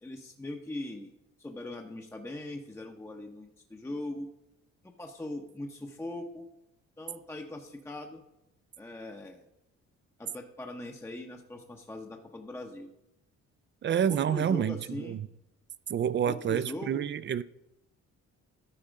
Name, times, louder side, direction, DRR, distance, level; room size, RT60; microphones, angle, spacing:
voice 1, 0.0-1.1 1.4-4.3 4.8-6.5 7.0-8.2 8.8-9.4 10.2-12.9 14.1-15.2 16.3-17.1, left 1 dB, 10° left, 0.7 m, -40 dB
voice 2, 13.8-15.2 15.9-17.4, right 9 dB, 40° right, 0.4 m, -28 dB
12.5 x 4.3 x 5.1 m
cardioid pair, 90°, 30 cm